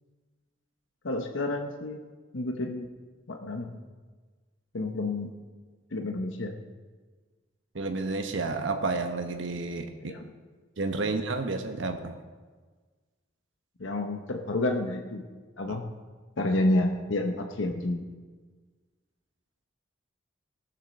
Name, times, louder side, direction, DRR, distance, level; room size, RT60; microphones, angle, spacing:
voice 1, 1.0-2.0 2.3-2.9 3.3-3.8 4.7-5.3 5.9-6.6 10.0-10.3 13.8-15.3 15.6-15.8 16.4-18.0, left 2 dB, 90° left, 4 dB, 1.0 m, -29 dB
voice 2, 7.7-10.1 10.8-12.2 15.7-15.8, right 3 dB, 80° right, 5 dB, 1.0 m, -31 dB
18.0 x 7.3 x 6.4 m, 1.4 s
head